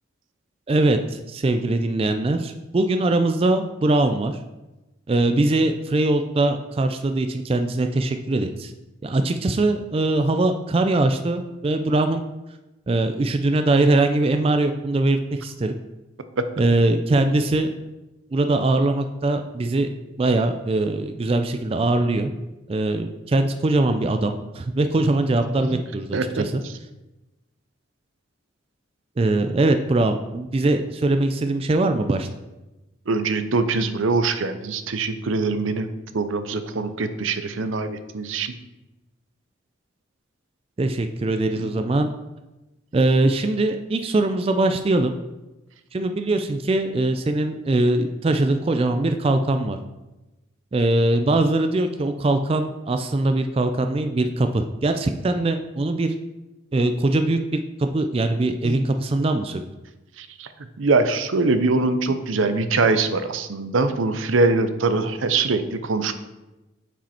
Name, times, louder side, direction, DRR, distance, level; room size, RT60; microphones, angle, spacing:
voice 1, 0.7-4.3 5.1-8.7 9.0-12.2 12.9-15.7 16.6-17.7 18.3-19.9 20.2-22.3 22.7-26.6 29.2-32.3 40.8-42.1 42.9-45.1 45.9-49.8 50.7-56.1 56.7-59.6, right 2 dB, 30° right, 7 dB, 0.3 m, -22 dB
voice 2, 26.1-26.4 33.1-35.9 36.1-38.5 41.6-41.7 58.6-58.8 60.2-60.5 60.8-66.1, right 3 dB, 75° right, 10 dB, 0.6 m, -23 dB
8.9 x 5.1 x 4.3 m, 1.0 s
head